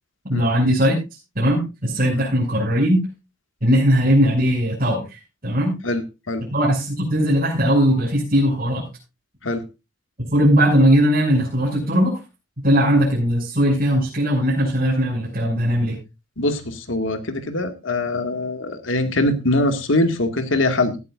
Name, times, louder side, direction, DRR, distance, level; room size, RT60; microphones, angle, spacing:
voice 1, 0.3-1.0 1.3-3.0 3.6-5.8 6.5-8.8 10.3-12.2 12.6-16.0, equal, 45° right, -7 dB, 6.5 m, -19 dB
voice 2, 5.8-6.4 9.4-9.6 16.4-21.0, left 2 dB, 80° left, 7 dB, 2.0 m, -22 dB
17.5 x 12.5 x 2.5 m, 0.28 s
head